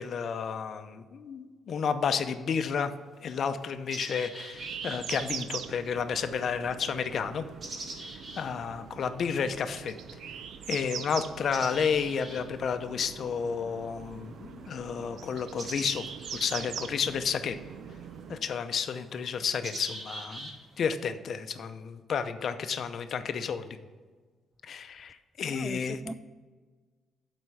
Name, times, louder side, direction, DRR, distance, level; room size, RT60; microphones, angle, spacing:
voice 1, 0.0-2.9 3.2-7.4 8.4-9.9 10.7-16.0 16.3-17.6 18.3-20.5 20.8-23.8 24.6-26.0, left 6 dB, 60° left, 0.6 m, -31 dB
sound 1, 1.7-1.8 2.6-2.7 3.1-20.8, right 2 dB, 50° right, 2.2 m, -46 dB
sound 2, 4.5-18.4, right 7 dB, 75° right, 0.5 m, -42 dB
voice 2, 25.5-26.1, right 1 dB, 5° right, 0.3 m, -39 dB
8.0 x 4.3 x 5.6 m
cardioid pair, 90°, 0 cm